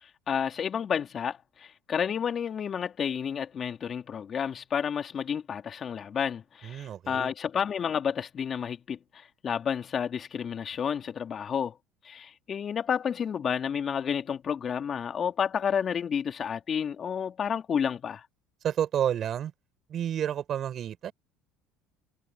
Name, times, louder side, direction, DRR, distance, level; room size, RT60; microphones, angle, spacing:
voice 1, 0.0-11.8 12.0-18.2, left 7 dB, 40° left, 3.2 m, -31 dB
voice 2, 6.6-7.3 18.6-19.5 19.9-21.1, right 10 dB, 45° right, 5.1 m, -30 dB
supercardioid pair, 105°, 0 cm